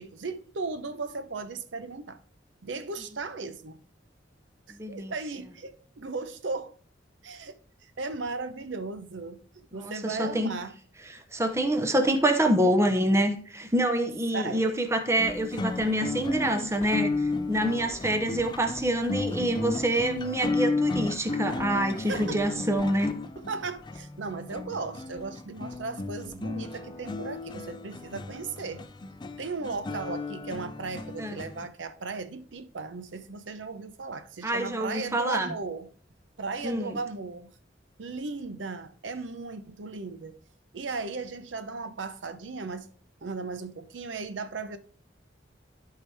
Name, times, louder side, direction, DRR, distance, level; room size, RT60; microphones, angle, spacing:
voice 1, 0.0-2.2 2.6-3.8 4.7-6.7 7.2-7.6 7.8-10.7 14.3-14.8 21.9-22.6 23.4-28.8 29.4-35.9 36.4-37.5 38.0-40.4 40.7-42.9 43.2-44.8, right 3 dB, 85° right, 0.7 m, -36 dB
voice 2, 4.8-5.1 9.8-10.5 11.1-23.1 31.2-31.4 34.4-35.5 36.6-37.0, right 1 dB, 15° right, 0.9 m, -26 dB
sound 1, 15.2-31.7, left 3 dB, 25° left, 0.4 m, -33 dB
12.5 x 4.7 x 3.4 m
head